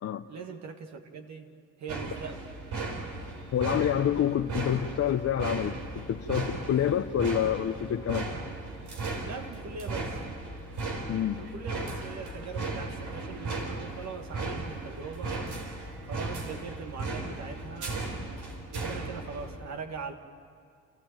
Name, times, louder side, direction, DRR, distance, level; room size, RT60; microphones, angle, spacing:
voice 1, 0.3-1.5 1.8-2.4 9.2-10.2 11.4-15.5 16.0-18.1 18.7-20.2, right 5 dB, 65° right, 5 dB, 1.6 m, -41 dB
sound 1, 1.9-19.6, right 3 dB, 80° right, 4.0 m, -36 dB
voice 2, 3.5-5.8 6.1-8.3 11.1-11.4, left 10 dB, 55° left, 4 dB, 0.8 m, -27 dB
30.0 x 14.0 x 9.0 m, 2.4 s
cardioid pair, 90°, 30 cm